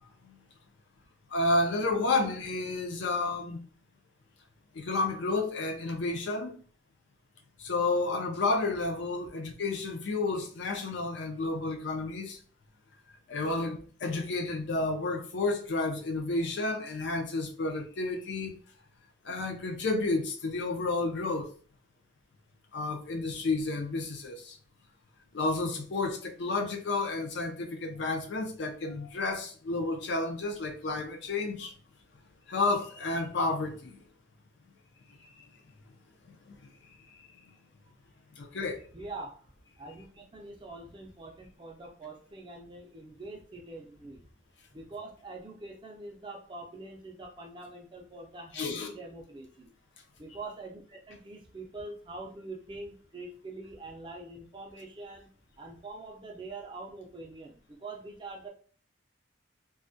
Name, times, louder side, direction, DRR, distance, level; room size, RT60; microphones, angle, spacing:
voice 1, 1.3-3.6 4.7-6.5 7.6-12.4 13.3-18.5 19.2-21.5 22.7-24.6 25.3-31.7 32.5-34.0 36.3-36.6 38.4-38.8 48.5-48.9, left 3 dB, 65° left, 0.4 m, -31 dB
voice 2, 38.9-44.3 44.7-49.7 50.2-55.3 55.6-58.5, right 2 dB, 25° right, 0.4 m, -44 dB
2.3 x 2.1 x 2.6 m
head